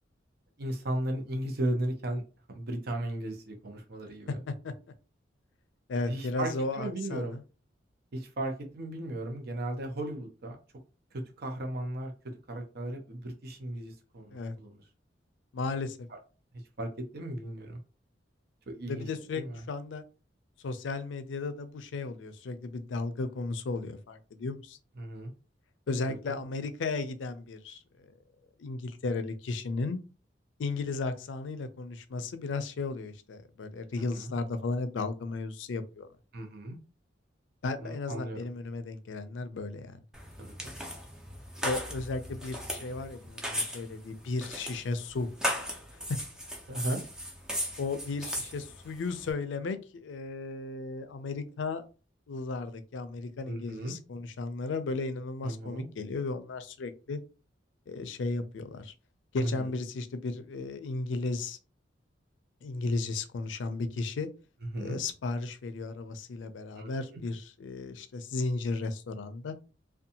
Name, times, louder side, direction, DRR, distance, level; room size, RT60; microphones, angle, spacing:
voice 1, 0.6-2.2 2.5-4.4 6.1-7.4 8.1-10.6 11.1-12.1 12.5-14.8 16.8-17.8 18.7-19.1 19.3-19.6 25.0-25.3 26.1-26.4 34.0-34.3 36.3-36.8 37.8-38.4 40.4-40.7 46.7-47.0 53.5-54.0 55.4-55.9 59.4-59.7 64.7-65.0 66.8-67.2, right 1 dB, 60° right, 0.6 m, -36 dB
voice 2, 5.9-7.4 14.3-14.6 15.5-16.0 18.9-20.0 20.6-24.8 25.9-28.1 28.6-30.0 30.6-36.1 37.6-40.0 41.6-45.3 46.1-46.2 47.8-51.8 52.3-57.2 57.9-58.9 59.3-61.6 62.6-64.3 64.8-69.5, left 3 dB, 85° left, 0.4 m, -35 dB
sound 1, 40.1-49.3, equal, 5° right, 0.4 m, -37 dB
2.6 x 2.2 x 2.7 m
head